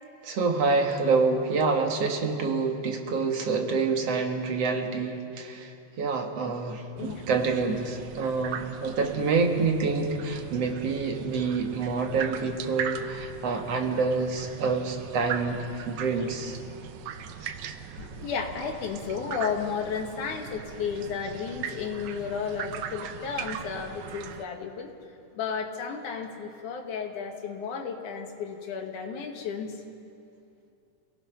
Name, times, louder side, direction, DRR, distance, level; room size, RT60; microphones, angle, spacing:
voice 1, 0.2-16.6 17.4-17.5, right 4 dB, 55° right, 3 dB, 2.4 m, -27 dB
voice 2, 6.9-7.2 16.2-16.3 18.0-24.9 25.3-29.7, left 6 dB, 70° left, 2 dB, 3.3 m, -33 dB
sound 1, 7.0-24.4, right 8 dB, 70° right, 2.0 m, -39 dB
29.5 x 18.0 x 5.8 m, 2.6 s
omnidirectional pair, 3.8 m